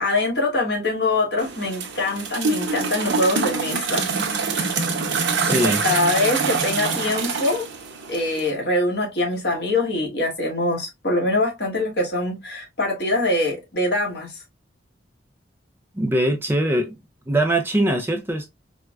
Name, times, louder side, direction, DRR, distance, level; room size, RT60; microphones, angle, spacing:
voice 1, 0.0-4.0 5.5-7.7 8.1-14.4, left 2 dB, 55° left, 1.3 m, -23 dB
sound 1, 1.4-8.5, right 4 dB, 75° right, 0.8 m, -25 dB
voice 2, 5.4-5.8 15.9-17.0 17.3-18.5, right 1 dB, 10° right, 0.4 m, -21 dB
4.4 x 2.1 x 2.3 m
head